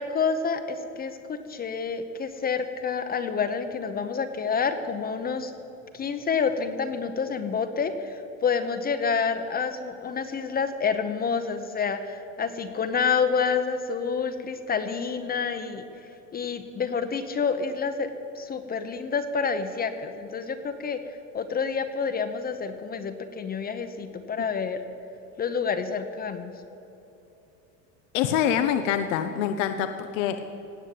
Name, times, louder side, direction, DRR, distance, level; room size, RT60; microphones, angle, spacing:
voice 1, 0.0-5.5 5.9-15.8 16.3-24.8 25.4-26.5, left 5 dB, 25° left, 8 dB, 0.8 m, -28 dB
voice 2, 28.1-30.4, left 9 dB, 80° left, 8 dB, 0.9 m, -25 dB
18.0 x 7.9 x 7.8 m, 2.9 s
supercardioid pair, 120°, 37 cm